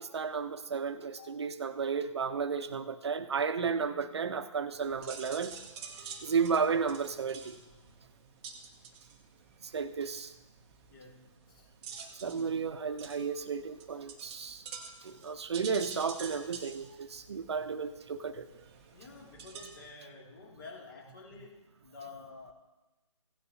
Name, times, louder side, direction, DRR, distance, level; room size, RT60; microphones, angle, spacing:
voice 1, 0.0-5.6 6.2-7.6 9.6-10.3 12.2-14.6 15.0-18.5, right 5 dB, 55° right, 10 dB, 0.8 m, -33 dB
sound 1, 4.7-19.9, right 6 dB, 15° right, 0.8 m, -49 dB
voice 2, 10.9-11.7 18.9-22.5, left 4 dB, 40° left, -2 dB, 2.8 m, -50 dB
16.5 x 9.3 x 2.9 m, 1.1 s
figure-of-eight pair, 150°, 17 cm